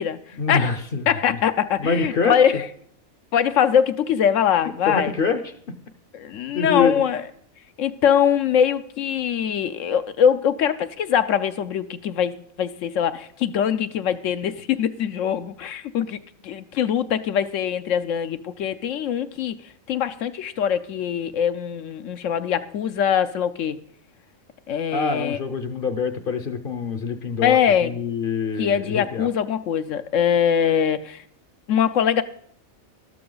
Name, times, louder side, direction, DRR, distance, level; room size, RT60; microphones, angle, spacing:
voice 1, 0.3-1.4 1.8-2.3 4.9-5.5 6.5-7.0 24.9-29.3, left 5 dB, 50° left, 10 dB, 0.8 m, -25 dB
voice 2, 1.1-2.7 3.3-5.1 6.1-7.2 7.8-16.2 16.4-19.6 19.9-23.8 24.7-25.4 27.4-27.9 28.6-31.2 31.7-32.2, left 8 dB, 75° left, 11 dB, 1.0 m, -22 dB
13.0 x 12.5 x 3.9 m, 0.63 s
omnidirectional pair, 1.4 m